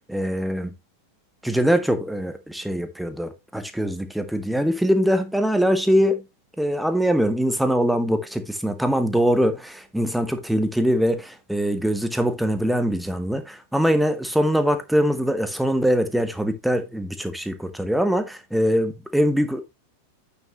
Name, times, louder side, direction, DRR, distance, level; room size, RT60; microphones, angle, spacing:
voice 1, 0.1-0.7 1.4-6.2 6.6-19.6, equal, ahead, 1.3 m, -22 dB
8.8 x 6.6 x 3.0 m
figure-of-eight pair, 90°, 0 cm